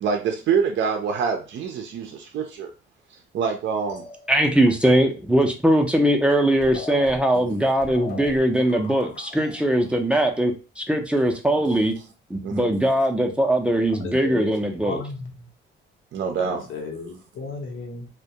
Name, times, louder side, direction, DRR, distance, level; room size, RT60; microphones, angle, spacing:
voice 1, 0.0-2.7 3.3-4.0 12.4-12.7 16.1-16.7, right 6 dB, 65° right, 3 dB, 0.5 m, -25 dB
sound 1, 3.9-4.7 6.3-6.4 6.6-9.6, left 3 dB, 55° left, 0.9 m, -40 dB
voice 2, 4.3-11.9 12.3-15.0, right 1 dB, 5° right, 2 dB, 0.5 m, -21 dB
voice 3, 14.0-15.3 16.4-18.1, left 4 dB, 80° left, 1 dB, 0.8 m, -34 dB
2.3 x 2.1 x 2.7 m, 0.31 s
cardioid pair, 90°, 20 cm